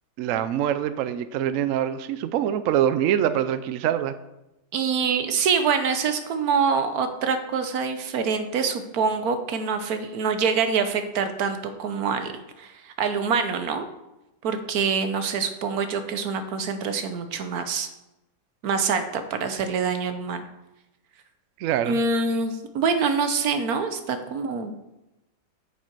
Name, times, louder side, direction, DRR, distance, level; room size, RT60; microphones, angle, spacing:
voice 1, 0.2-4.2 21.6-22.0, right 10 dB, 80° right, 12 dB, 0.7 m, -24 dB
voice 2, 4.7-12.3 12.6-13.8 14.4-17.9 18.6-20.4 21.8-24.7, right 5 dB, 60° right, 8 dB, 1.3 m, -25 dB
8.8 x 7.4 x 4.6 m, 0.94 s
omnidirectional pair, 1.9 m